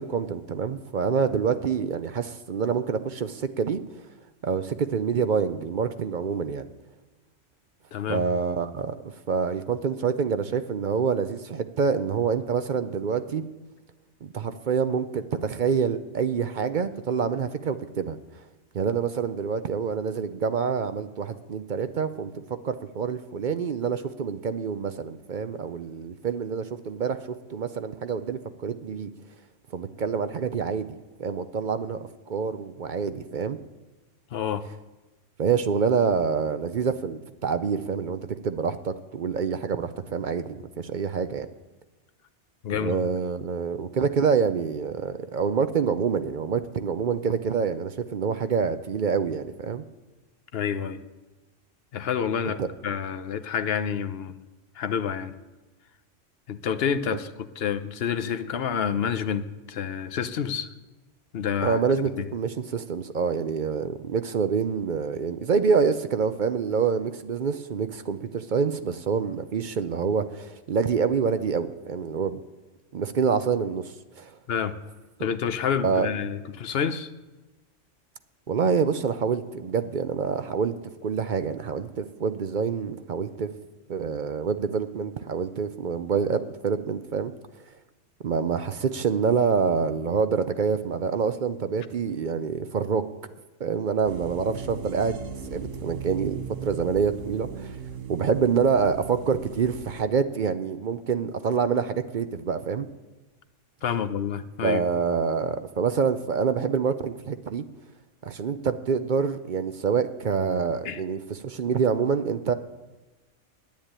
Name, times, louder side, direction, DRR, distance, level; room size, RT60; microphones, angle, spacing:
voice 1, 0.0-3.8 4.4-6.7 8.1-13.4 14.2-18.2 18.7-29.1 29.7-32.0 32.3-33.6 35.4-41.5 42.7-49.8 52.6-52.7 61.6-72.4 72.9-74.4 75.8-76.1 78.5-80.7 81.0-83.5 83.9-87.3 88.2-93.0 93.6-95.2 95.5-97.8 98.1-102.9 104.6-107.6 108.2-112.5, right 6 dB, 50° right, 10 dB, 0.6 m, -26 dB
voice 2, 7.9-8.2 34.3-34.7 42.6-43.0 50.5-51.0 51.9-54.3 54.8-55.3 56.5-57.3 57.6-60.7 61.3-61.8 62.2-62.3 74.5-74.8 75.2-77.1 103.8-104.8 110.8-111.0, left 7 dB, 55° left, 11 dB, 0.9 m, -28 dB
sound 1, 94.1-100.0, right 6 dB, 85° right, 1.3 m, -38 dB
10.5 x 9.9 x 8.9 m, 1.1 s
omnidirectional pair, 1.3 m